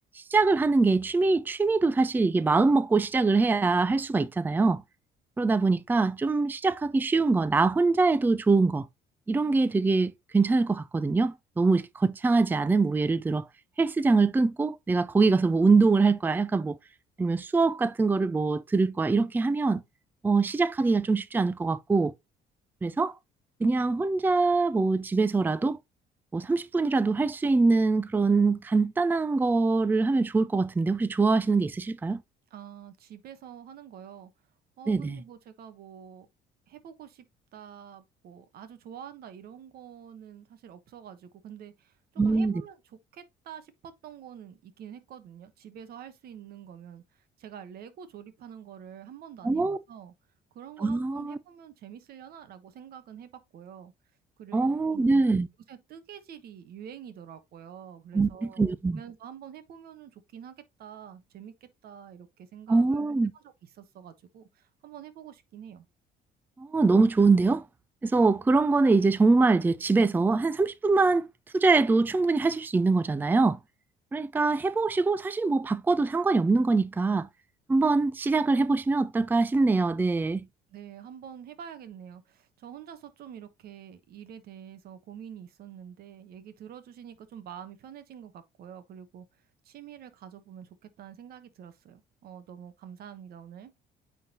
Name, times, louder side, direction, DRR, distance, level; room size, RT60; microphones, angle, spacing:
voice 1, 0.1-4.8 5.4-8.9 9.3-13.5 13.8-16.8 17.2-19.8 20.2-22.1 22.8-23.1 23.6-25.8 26.3-32.2 34.9-35.2 42.2-42.6 49.4-49.8 50.8-51.4 54.5-55.5 58.1-59.0 62.7-63.3 66.6-67.7 68.0-71.3 71.5-73.6 74.1-77.3 77.7-80.5, right 3 dB, 10° right, 0.4 m, -23 dB
voice 2, 32.5-34.3 34.8-36.3 36.7-37.2 37.5-42.0 42.2-42.8 43.1-50.1 50.5-53.9 54.4-55.2 55.7-65.9 80.7-89.2 89.6-93.7, right 9 dB, 65° right, 1.2 m, -46 dB
9.2 x 3.9 x 2.9 m
cardioid pair, 110°, 17 cm